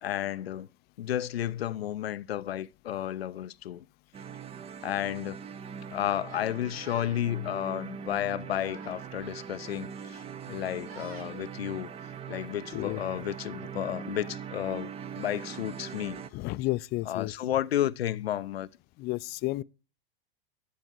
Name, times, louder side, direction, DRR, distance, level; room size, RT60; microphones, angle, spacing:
voice 1, 0.0-0.7 1.0-3.9 4.8-5.4 5.9-11.9 12.3-16.2 17.1-18.7, left 11 dB, 90° left, 0.5 m, -32 dB
sound 1, 4.1-16.3, right 7 dB, 20° right, 0.5 m, -41 dB
Yell, 6.3-7.2 8.1-9.0 10.0-11.4 12.2-13.2, right 4 dB, 85° right, 2.0 m, -51 dB
voice 2, 12.7-13.2 16.3-17.3 19.0-19.6, left 19 dB, 35° left, 0.4 m, -32 dB
11.0 x 7.1 x 4.5 m
hypercardioid pair, 95°, 30 cm